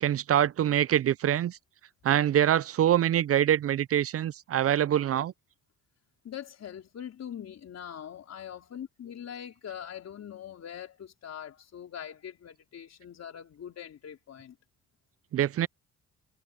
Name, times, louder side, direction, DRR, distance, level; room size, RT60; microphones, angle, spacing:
voice 1, 0.0-1.6 2.0-5.3 15.3-15.7, right 11 dB, 50° right, 0.5 m, -24 dB
voice 2, 6.2-14.6, left 9 dB, 60° left, 4.1 m, -42 dB
cardioid pair, 90°, 30 cm